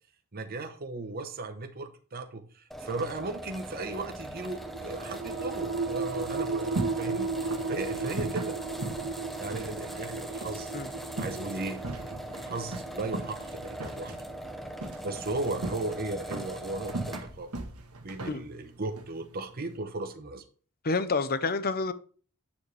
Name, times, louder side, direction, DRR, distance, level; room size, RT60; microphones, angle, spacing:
voice 1, 0.3-8.6 9.4-10.7 11.2-11.8 12.3-14.2 15.0-17.5 18.0-20.4, right 2 dB, 45° right, 0.9 m, -36 dB
sound 1, 2.7-17.4, right 1 dB, ahead, 1.0 m, -41 dB
sound 2, 4.5-15.7, right 4 dB, 70° right, 1.4 m, -36 dB
sound 3, 6.4-19.8, right 2 dB, 85° right, 1.5 m, -40 dB
voice 2, 20.8-21.9, left 3 dB, 45° left, 0.7 m, -28 dB
9.2 x 7.2 x 3.3 m
head